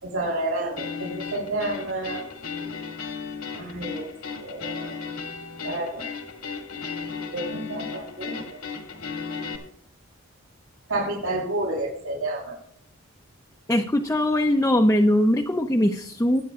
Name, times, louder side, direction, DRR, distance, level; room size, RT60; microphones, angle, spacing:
voice 1, 0.0-2.2 3.5-4.1 4.4-5.0 5.6-6.1 7.3-8.6 10.9-12.6, right 2 dB, 80° right, -3 dB, 6.7 m, -30 dB
sound 1, 0.8-9.6, left 5 dB, 90° left, 2.4 m, -35 dB
voice 2, 13.7-16.4, left 1 dB, 15° left, 2 dB, 0.6 m, -21 dB
23.0 x 10.0 x 2.5 m, 0.64 s
head